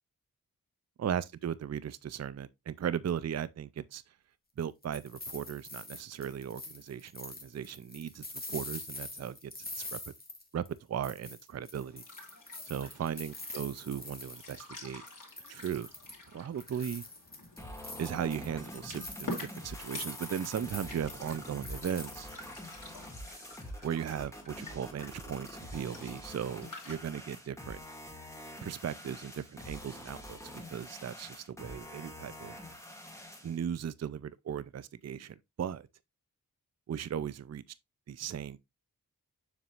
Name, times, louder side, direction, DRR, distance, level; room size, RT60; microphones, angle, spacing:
voice 1, 1.0-4.0 4.6-9.5 9.8-10.1 10.5-12.0 12.6-15.0 15.5-15.9 16.3-17.0 18.0-22.3 23.8-27.8 28.6-32.5 33.4-35.9 36.9-37.6 38.1-38.6, right 8 dB, 50° right, 0.4 m, -37 dB
sound 1, 4.6-10.8 11.0-14.8 15.1-16.2 16.6-22.7, left 2 dB, 25° left, 1.7 m, -45 dB
sound 2, 11.8-27.0, left 2 dB, 60° left, 3.0 m, -49 dB
sound 3, 17.6-33.6, equal, 10° left, 2.0 m, -46 dB
7.4 x 6.1 x 2.4 m
wide cardioid pair, 85°, 35 cm